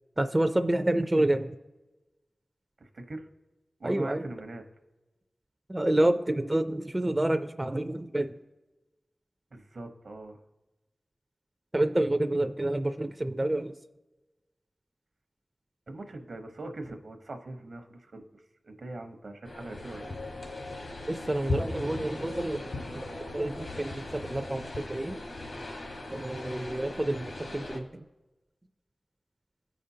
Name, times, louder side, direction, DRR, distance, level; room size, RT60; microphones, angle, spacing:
voice 1, 0.2-1.5 3.8-4.2 5.7-8.3 11.7-13.7 21.1-23.0 23.3-25.2 26.1-28.0, right 1 dB, 25° right, 7 dB, 0.4 m, -28 dB
voice 2, 1.1-1.5 2.8-3.3 3.8-4.6 9.5-10.4 15.9-20.2, right 2 dB, 75° right, 6 dB, 0.8 m, -42 dB
sound 1, 19.4-27.8, left 2 dB, 70° left, 1.3 m, -38 dB
14.5 x 5.0 x 2.7 m, 1.1 s
wide cardioid pair, 70°, 0 cm